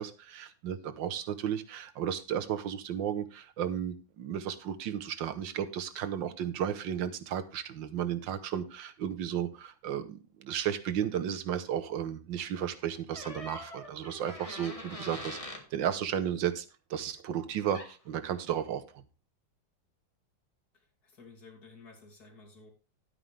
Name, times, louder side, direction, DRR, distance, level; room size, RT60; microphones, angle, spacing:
voice 1, 0.0-19.0, right 9 dB, 80° right, 1.7 m, -34 dB
sound 1, 13.1-15.7 17.7-17.9, left 1 dB, 20° left, 1.5 m, -43 dB
voice 2, 20.7-22.7, left 3 dB, 55° left, 3.2 m, -54 dB
11.5 x 9.1 x 3.3 m
omnidirectional pair, 2.0 m